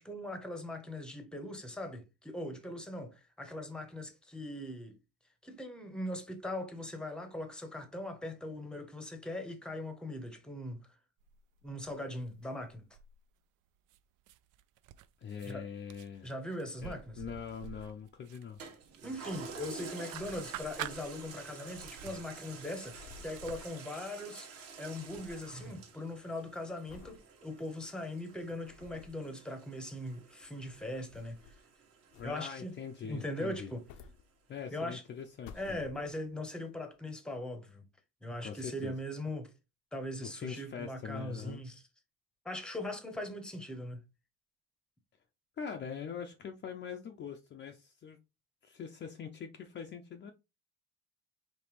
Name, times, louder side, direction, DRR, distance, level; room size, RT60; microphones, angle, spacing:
voice 1, 0.0-5.0 5.4-10.8 11.6-12.8 15.4-15.7 16.2-17.2 19.0-31.4 32.2-32.7 33.1-33.8 34.7-35.0 35.5-37.8 38.2-39.5 39.9-41.8 42.4-44.0, left 1 dB, 5° left, 0.8 m, -40 dB
sound 1, 11.2-12.0 12.3-13.4 13.9-15.5 15.9-19.7 20.1-21.5 21.7-23.6, right 11 dB, 65° right, 0.5 m, -48 dB
voice 2, 15.2-16.3 16.8-18.6 32.2-33.7 34.5-35.8 38.4-38.9 40.2-41.6 45.6-48.2 48.6-50.3, left 7 dB, 35° left, 0.5 m, -43 dB
Toilet flush, 18.6-33.4 33.9-34.0, right 5 dB, 45° right, 1.3 m, -50 dB
sound 2, 19.8-21.0 21.2-21.3 21.5-24.3 24.5-25.5 26.0-26.3 26.9-27.2 27.8-27.9 28.4-29.3 30.3-31.7 32.1-32.7 33.5-34.8 35.2-36.4 37.0-37.1, left 5 dB, 90° left, 0.7 m, -56 dB
5.2 x 3.3 x 3.1 m
cardioid pair, 140°, 34 cm